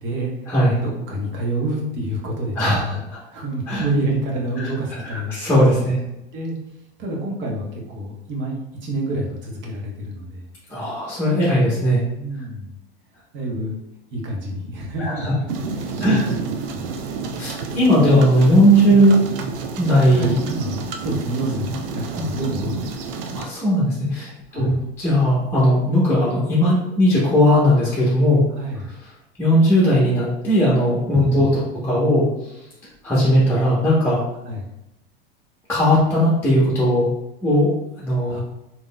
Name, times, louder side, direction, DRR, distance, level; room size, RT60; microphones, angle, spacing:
voice 1, 0.0-0.3 0.8-3.0 3.3-5.4 6.3-6.6 7.0-10.5 12.1-12.8 13.3-13.8 14.1-16.4 16.7-16.9 20.1-22.9 24.5-24.8 28.5-28.9 31.2-31.6 34.4-34.7 38.3-38.4, right 1 dB, 40° right, -1 dB, 1.1 m, -28 dB
voice 2, 5.1-6.0 10.7-12.0 15.0-15.3 16.0-16.2 17.4-19.2 19.8-20.4 22.2-22.3 23.3-28.5 29.4-32.3 33.0-34.2 35.7-37.1 37.4-37.7 38.0-38.4, equal, 5° left, -8 dB, 1.1 m, -18 dB
sound 1, 15.5-23.5, right 4 dB, 65° right, 0.5 m, -29 dB
3.5 x 2.9 x 2.2 m, 0.89 s
hypercardioid pair, 95°, 30 cm